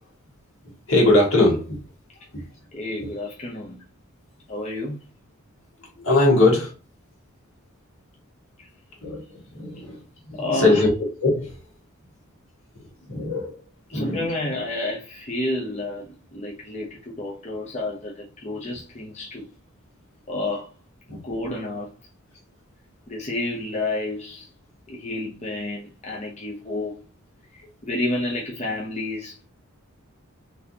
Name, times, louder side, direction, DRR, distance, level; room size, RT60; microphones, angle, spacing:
voice 1, 0.9-1.8 2.3-2.4 6.0-6.7 9.0-10.9 11.2-11.6 12.7-13.5 13.9-14.2 21.1-21.2, left 2 dB, 65° left, 1.8 m, -21 dB
voice 2, 2.7-3.8 4.5-5.0 8.6-8.7 10.4-10.9 13.9-19.5 20.3-20.7 21.2-21.9 23.1-24.5 24.9-27.0 27.5-29.4, left 2 dB, 30° left, 0.7 m, -30 dB
4.1 x 3.4 x 2.8 m
head